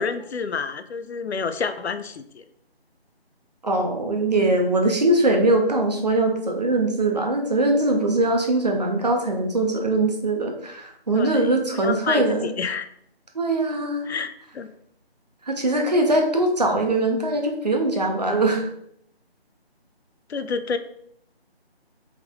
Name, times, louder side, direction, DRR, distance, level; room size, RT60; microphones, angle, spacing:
voice 1, 0.0-2.4 11.1-11.6 11.8-12.9 14.1-14.7 20.3-20.8, left 5 dB, 80° left, 10 dB, 0.5 m, -29 dB
voice 2, 3.6-12.5 13.3-14.1 15.4-18.7, right 2 dB, 40° right, 2 dB, 0.6 m, -22 dB
3.5 x 3.1 x 3.6 m, 0.70 s
figure-of-eight pair, 165°, 32 cm